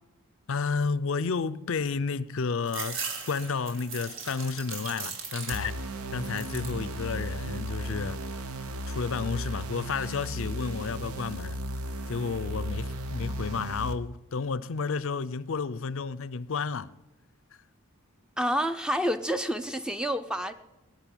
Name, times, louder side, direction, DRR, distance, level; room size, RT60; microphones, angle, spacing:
voice 1, 0.5-8.3 8.9-11.6 12.1-16.9, left 5 dB, 60° left, 0.5 m, -31 dB
sound 1, 2.7-5.9 6.2-6.8 7.3-8.0, right 5 dB, 60° right, 1.9 m, -38 dB
sound 2, 5.5-14.0, right 1 dB, 80° right, 1.0 m, -35 dB
voice 2, 18.4-20.5, equal, 5° right, 0.5 m, -28 dB
17.5 x 6.6 x 9.9 m
head